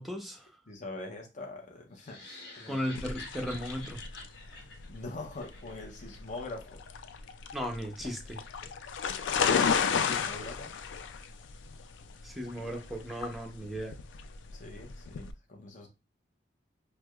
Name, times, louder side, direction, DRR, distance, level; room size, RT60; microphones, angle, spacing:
voice 1, 0.0-0.5 2.7-4.0 7.5-8.4 12.2-14.0, equal, ahead, 0.6 m, -36 dB
voice 2, 0.7-2.2 2.6-2.8 4.4-6.8 8.9-10.7 14.5-15.9, left 2 dB, 45° left, 0.6 m, -43 dB
sound 1, 2.0-6.2, left 3 dB, 60° left, 1.1 m, -49 dB
sound 2, 2.9-15.3, left 6 dB, 85° left, 0.3 m, -33 dB
4.5 x 2.1 x 2.3 m
head